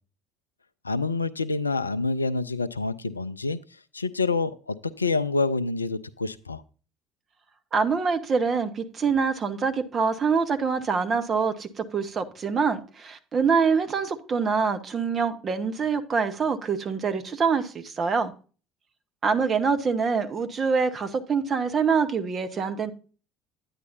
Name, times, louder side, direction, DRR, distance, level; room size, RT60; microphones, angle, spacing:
voice 1, 0.8-3.6 3.9-6.6, left 3 dB, 85° left, 0.4 m, -27 dB
voice 2, 7.7-18.3 19.2-22.9, right 5 dB, 35° right, 1.1 m, -25 dB
9.8 x 9.5 x 2.7 m
figure-of-eight pair, 60°, 0 cm